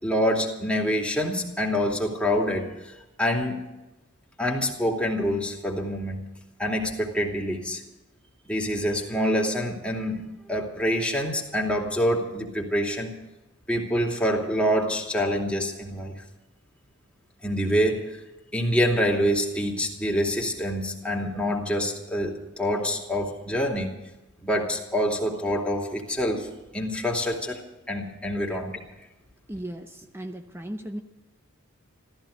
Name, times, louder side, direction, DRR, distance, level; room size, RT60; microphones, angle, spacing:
voice 1, 0.0-3.6 4.4-6.3 6.6-7.8 8.4-13.1 13.7-16.1 17.4-18.2 18.5-23.9 24.4-27.6 27.9-28.8, equal, 5° left, -1 dB, 2.7 m, -26 dB
voice 2, 29.5-31.0, right 1 dB, 10° right, 6 dB, 0.8 m, -36 dB
14.5 x 14.0 x 6.6 m, 1.0 s
head